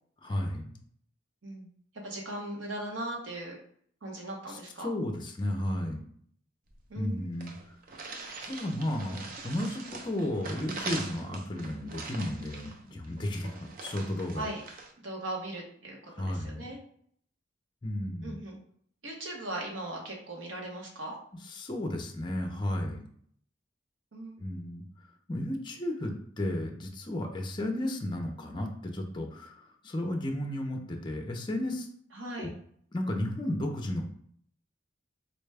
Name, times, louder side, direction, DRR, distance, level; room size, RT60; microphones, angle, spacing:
voice 1, 0.2-0.7 4.5-6.0 7.0-7.8 8.4-14.5 16.1-16.6 17.8-18.4 21.4-23.0 24.4-24.8 25.3-31.9 32.4-32.5 32.9-34.1, left 1 dB, 25° left, 3 dB, 0.5 m, -33 dB
voice 2, 2.0-3.6 4.0-4.9 6.9-7.3 14.3-14.6 15.0-16.8 18.2-18.6 19.0-21.2 24.1-24.4 32.1-32.5, right 1 dB, 75° right, -1 dB, 1.0 m, -38 dB
sound 1, 6.7-6.8 7.0-7.1 7.4-14.9, right 3 dB, 45° right, 0.5 m, -42 dB
4.1 x 2.2 x 3.3 m, 0.62 s
head